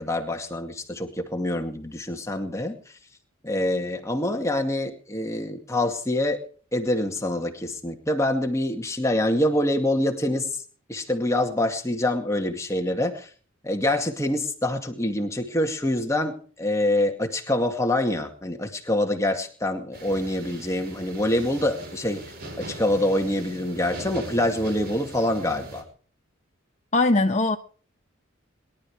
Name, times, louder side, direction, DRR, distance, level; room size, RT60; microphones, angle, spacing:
voice 1, 0.0-2.8 3.4-6.4 6.7-10.6 10.9-13.3 13.6-22.2 22.6-25.8, left 1 dB, 15° left, 2.2 m, -25 dB
sound 1, 19.9-25.8, right 1 dB, 45° right, 5.0 m, -40 dB
voice 2, 26.9-27.6, left 2 dB, 35° left, 1.0 m, -20 dB
22.5 x 12.0 x 4.9 m
head